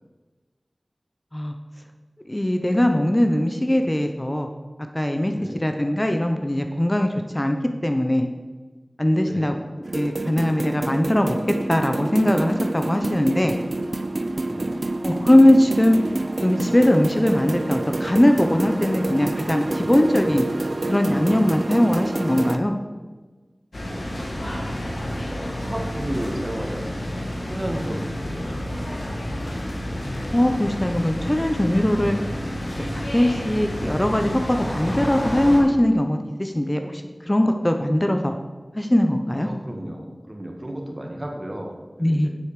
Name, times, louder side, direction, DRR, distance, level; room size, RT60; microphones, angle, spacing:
voice 1, 2.3-4.5 4.9-7.1 7.3-7.6 7.8-8.3 9.0-9.5 9.9-11.4 11.7-13.5 15.0-16.0 16.4-20.5 20.8-22.7 30.3-32.2 32.8-38.3 38.8-39.5 42.0-42.3, left 1 dB, 20° left, 5 dB, 0.7 m, -20 dB
voice 2, 9.2-9.6 14.4-14.8 23.9-24.2 25.3-27.2 27.5-29.3 39.4-42.3, right 1 dB, 35° right, 1 dB, 1.7 m, -34 dB
sound 1, 9.8-22.6, right 2 dB, 55° right, 0.6 m, -28 dB
sound 2, 23.7-35.6, left 1 dB, 75° left, 2.2 m, -30 dB
7.9 x 6.5 x 6.6 m, 1.3 s
wide cardioid pair, 50°, 0 cm